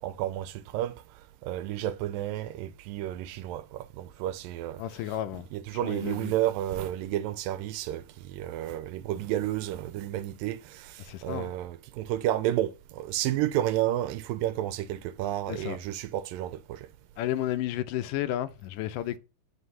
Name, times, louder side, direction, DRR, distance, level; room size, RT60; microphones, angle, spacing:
voice 1, 0.0-1.0 1.4-4.8 5.5-16.9, right 13 dB, 85° right, 2.3 m, -31 dB
voice 2, 4.8-5.5 5.7-6.3 11.0-11.5 15.5-15.8 17.2-19.2, left 13 dB, 80° left, 2.1 m, -32 dB
10.0 x 5.3 x 5.5 m
omnidirectional pair, 3.9 m